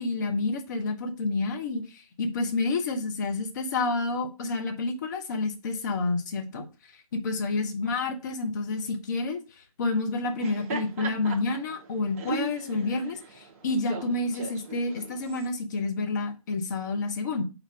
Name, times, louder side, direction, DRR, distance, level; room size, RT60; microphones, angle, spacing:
voice 1, 0.0-1.8 2.2-6.6 7.2-9.4 9.8-17.4, left 3 dB, 30° left, 4 dB, 0.9 m, -29 dB
Laughter, 10.2-15.5, right 4 dB, 25° right, 0.8 m, -38 dB
4.4 x 4.0 x 5.6 m, 0.30 s
figure-of-eight pair, 140°, 19 cm